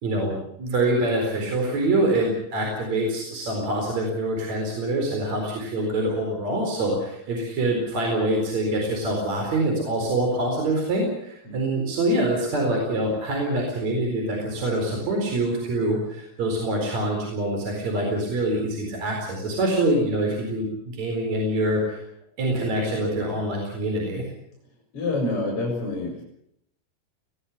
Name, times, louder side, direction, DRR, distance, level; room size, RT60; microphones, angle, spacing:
voice 1, 0.0-22.0 22.4-24.3, right 1 dB, 40° right, 1 dB, 5.3 m, -25 dB
voice 2, 24.9-26.2, left 2 dB, 30° left, 0 dB, 5.3 m, -27 dB
20.0 x 18.0 x 8.6 m, 0.73 s
omnidirectional pair, 5.1 m